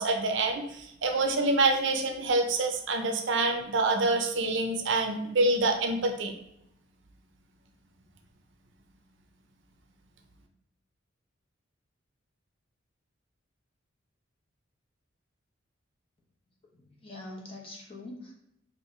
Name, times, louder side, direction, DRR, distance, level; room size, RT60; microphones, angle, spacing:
voice 1, 0.0-6.3, right 2 dB, 65° right, 4 dB, 0.6 m, -26 dB
voice 2, 16.7-18.3, left 2 dB, 30° left, -1 dB, 0.9 m, -44 dB
4.6 x 2.5 x 3.2 m, 0.81 s
head